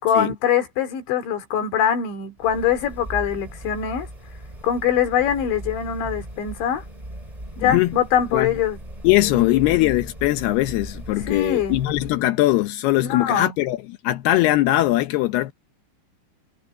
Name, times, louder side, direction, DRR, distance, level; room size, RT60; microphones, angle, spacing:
voice 1, 0.0-4.1 4.6-6.8 7.6-8.8 9.3-9.6 11.3-11.8 13.0-13.5, left 8 dB, 65° left, 5.3 m, -23 dB
sound 1, 2.4-12.2, right 1 dB, 5° right, 4.7 m, -38 dB
voice 2, 9.0-13.8 14.0-15.5, left 16 dB, 85° left, 2.3 m, -20 dB
omnidirectional pair, 5.7 m